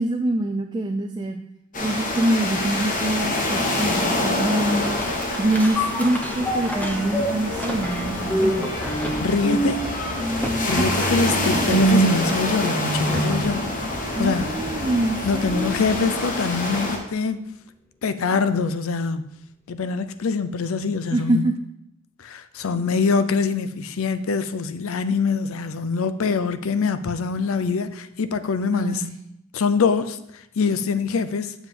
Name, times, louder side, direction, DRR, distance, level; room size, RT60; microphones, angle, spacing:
voice 1, 0.0-1.4 1.8-4.8 5.4-8.7 9.5-9.8 10.1-10.2 10.8-10.9 13.4-13.6 14.1-15.8 21.1-21.7 28.7-29.2, right 1 dB, 20° right, 0.4 m, -25 dB
sound 1, 1.7-17.0, left 1 dB, 40° left, 1.2 m, -26 dB
sound 2, 5.0-13.6 14.0-14.1, right 2 dB, 5° left, 0.9 m, -26 dB
voice 2, 9.2-9.8 10.7-13.7 14.2-14.5 15.2-17.4 18.0-19.2 19.7-21.4 22.2-29.0 29.5-31.5, left 5 dB, 70° left, 0.5 m, -24 dB
7.4 x 7.0 x 3.7 m
head